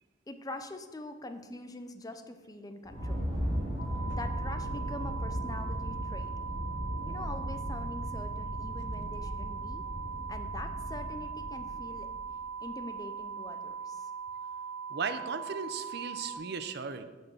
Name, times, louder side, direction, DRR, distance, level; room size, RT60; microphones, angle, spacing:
voice 1, 0.3-3.3 4.1-6.3 7.0-9.8 10.3-12.1 12.6-14.1, left 2 dB, 20° left, 7 dB, 0.6 m, -44 dB
sound 1, 2.8-12.5, equal, 35° right, 2.2 m, -37 dB
sound 2, 3.8-16.4, right 6 dB, 75° left, 1.6 m, -40 dB
voice 2, 14.9-17.1, right 5 dB, 65° right, 10 dB, 0.6 m, -36 dB
8.0 x 4.5 x 7.1 m, 1.3 s
head